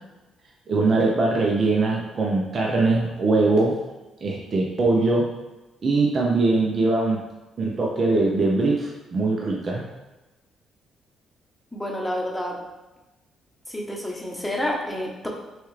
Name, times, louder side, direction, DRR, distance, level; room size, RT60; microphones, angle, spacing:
voice 1, 0.7-3.8 4.2-5.3 5.8-7.2 7.6-9.9, right 3 dB, 45° right, -2 dB, 0.6 m, -21 dB
voice 2, 11.7-12.6 13.7-15.3, left 1 dB, 5° left, -2 dB, 0.9 m, -29 dB
6.1 x 2.4 x 3.2 m, 1.1 s
cardioid pair, 90°, 0 cm